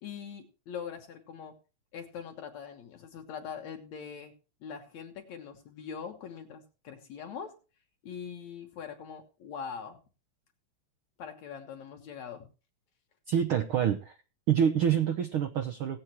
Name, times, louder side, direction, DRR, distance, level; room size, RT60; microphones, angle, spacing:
voice 1, 0.0-1.6 1.9-4.4 4.6-7.6 8.0-10.0 11.2-12.5, left 7 dB, 65° left, 2.3 m, -42 dB
voice 2, 13.3-14.2 14.5-16.0, right 9 dB, 80° right, 1.2 m, -27 dB
18.5 x 8.0 x 3.1 m
omnidirectional pair, 3.6 m